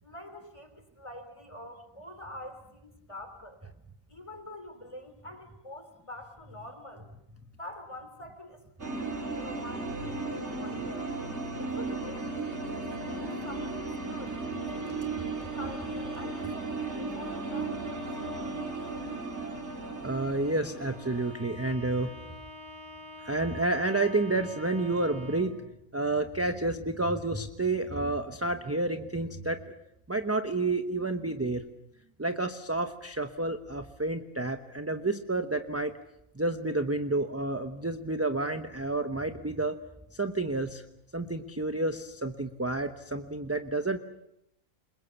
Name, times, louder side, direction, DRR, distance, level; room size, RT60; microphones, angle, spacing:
voice 1, 0.0-3.6 4.1-7.1 7.6-11.1 11.6-14.4 15.0-15.1 15.3-17.8, left 1 dB, 20° left, 7 dB, 3.6 m, -46 dB
sound 1, 8.8-21.3, right 3 dB, 50° right, 3.8 m, -35 dB
voice 2, 20.0-22.1 23.2-25.6 25.9-29.7 30.1-31.6 32.2-36.0 36.3-39.8 40.1-40.8 41.1-44.0, right 2 dB, 10° right, 7 dB, 0.9 m, -30 dB
Bowed string instrument, 20.8-25.7, left 1 dB, 45° left, 5.7 m, -46 dB
28.5 x 22.0 x 7.1 m, 0.81 s
omnidirectional pair, 1.4 m